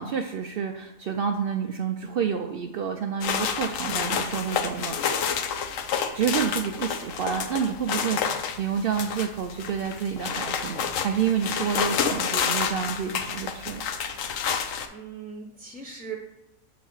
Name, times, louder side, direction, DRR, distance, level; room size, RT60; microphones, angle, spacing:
voice 1, 0.0-5.0 6.1-13.8, right 7 dB, 85° right, 4 dB, 0.5 m, -29 dB
sound 1, 3.2-14.9, left 7 dB, 70° left, 1.0 m, -29 dB
voice 2, 8.1-8.4 14.9-16.2, right 5 dB, 10° right, 0 dB, 0.5 m, -40 dB
6.5 x 4.0 x 6.3 m, 0.86 s
omnidirectional pair, 1.5 m